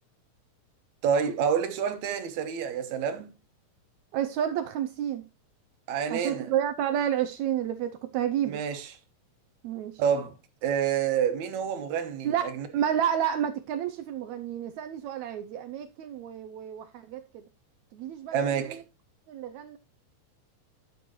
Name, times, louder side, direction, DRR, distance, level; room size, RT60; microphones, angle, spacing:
voice 1, 1.0-3.3 5.9-6.5 8.4-9.0 10.0-10.4 10.6-12.7 18.3-18.8, right 7 dB, 65° right, 2.3 m, -28 dB
voice 2, 4.1-5.2 6.1-8.6 9.6-10.0 12.2-17.4 17.9-18.8 19.3-19.8, right 10 dB, 80° right, 1.6 m, -30 dB
11.5 x 7.0 x 3.0 m
omnidirectional pair, 3.9 m